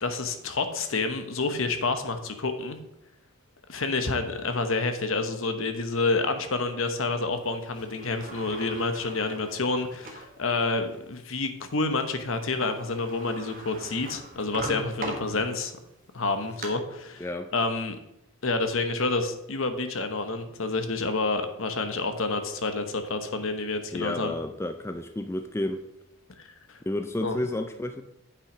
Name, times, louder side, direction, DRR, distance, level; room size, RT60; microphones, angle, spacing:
voice 1, 0.0-2.8 3.7-15.7 16.1-18.0 18.4-24.3 26.4-26.8 27.2-27.4, left 3 dB, 65° left, 8 dB, 1.0 m, -29 dB
Sliding door, 7.7-10.4 10.9-11.0 12.3-12.4 12.6-15.8 16.2-16.7, right 2 dB, 40° right, 1.3 m, -40 dB
voice 2, 23.9-25.8 26.9-28.0, left 1 dB, 10° left, 7 dB, 0.4 m, -31 dB
8.6 x 5.8 x 5.0 m, 0.83 s
head